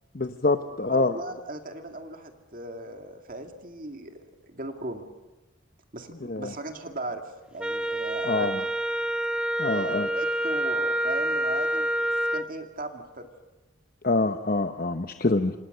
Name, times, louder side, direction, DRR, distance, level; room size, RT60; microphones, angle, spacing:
voice 1, 0.1-1.1 6.2-6.5 8.2-8.6 9.6-10.1 14.0-15.5, left 2 dB, 45° left, 7 dB, 0.9 m, -25 dB
voice 2, 0.9-5.1 5.9-7.2 7.5-8.7 9.7-11.9 12.3-13.3, right 2 dB, 45° right, 5 dB, 2.3 m, -37 dB
Wind instrument woodwind instrument, 7.6-12.5, right 1 dB, 5° right, 1.0 m, -27 dB
29.0 x 26.0 x 6.8 m, 1.1 s
head